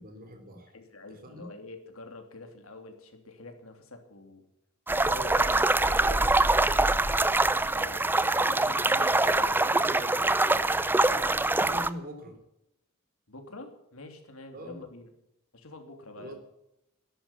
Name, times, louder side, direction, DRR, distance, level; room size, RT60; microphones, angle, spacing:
voice 1, 0.0-0.7 1.1-1.5 5.0-5.7 6.0-6.3 11.6-12.4 14.5-14.9 16.2-16.4, equal, 45° right, 6 dB, 3.4 m, -42 dB
voice 2, 0.7-4.4 5.3-5.4 5.8-6.2 7.7-10.7 13.3-15.1 15.5-16.4, left 2 dB, 75° left, 5 dB, 2.9 m, -46 dB
sound 1, 4.9-11.9, right 2 dB, 10° right, 0.5 m, -24 dB
13.5 x 11.0 x 8.4 m, 0.84 s
head